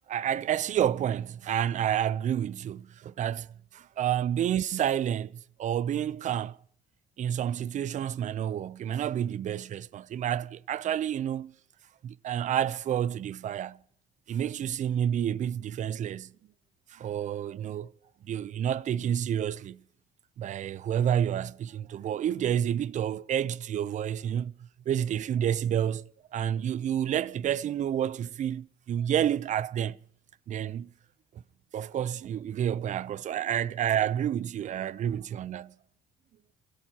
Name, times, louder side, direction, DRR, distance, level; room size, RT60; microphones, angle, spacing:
voice 1, 0.1-6.6 7.2-11.5 12.0-13.8 14.3-16.3 16.9-17.9 18.2-19.8 20.4-24.5 24.9-30.0 30.5-30.9 31.7-35.7, right 10 dB, 45° right, 0.5 m, -29 dB
26.5 x 16.5 x 2.9 m
cardioid pair, 110°, 17 cm